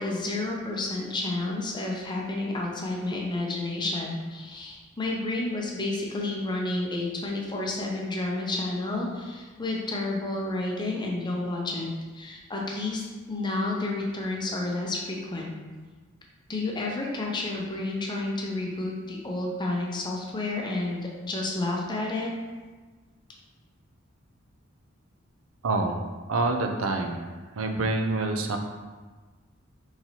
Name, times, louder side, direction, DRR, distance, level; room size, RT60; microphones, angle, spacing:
voice 1, 0.0-15.5 16.5-22.3, left 2 dB, 20° left, -1 dB, 0.5 m, -30 dB
voice 2, 25.6-26.0 26.3-27.3 27.6-28.6, right 2 dB, 75° right, 5 dB, 0.5 m, -26 dB
4.3 x 3.9 x 2.8 m, 1.3 s
head